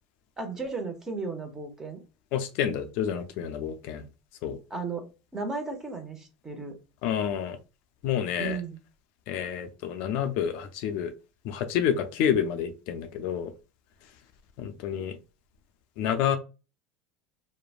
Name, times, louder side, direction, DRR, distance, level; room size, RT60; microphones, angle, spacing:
voice 1, 0.4-2.0 4.7-5.1 5.3-6.8 8.4-8.8, right 4 dB, 20° right, 5 dB, 0.8 m, -34 dB
voice 2, 2.3-4.0 4.4-4.6 7.0-7.6 8.0-8.6 9.3-11.1 11.4-13.5 14.6-15.2 16.0-16.4, left 9 dB, 65° left, 8 dB, 0.4 m, -29 dB
3.1 x 2.1 x 2.4 m, 0.31 s
supercardioid pair, 110°, 3 cm